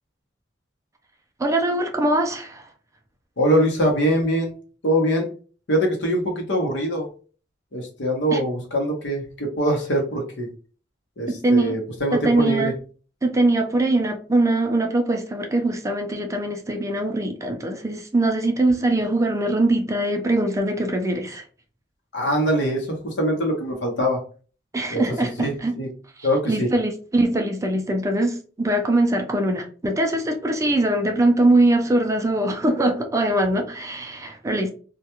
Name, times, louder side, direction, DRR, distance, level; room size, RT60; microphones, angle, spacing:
voice 1, 1.4-2.7 8.3-8.4 11.4-11.8 12.1-12.7 13.2-21.4 24.7-25.7 26.2-34.7, right 1 dB, 15° right, 4 dB, 0.4 m, -22 dB
voice 2, 3.4-4.5 4.8-5.3 5.7-7.1 7.7-10.5 11.2-12.7 22.1-24.2 24.9-25.9 26.2-26.7, equal, 80° left, 1 dB, 0.9 m, -23 dB
2.3 x 2.2 x 2.9 m, 0.39 s
head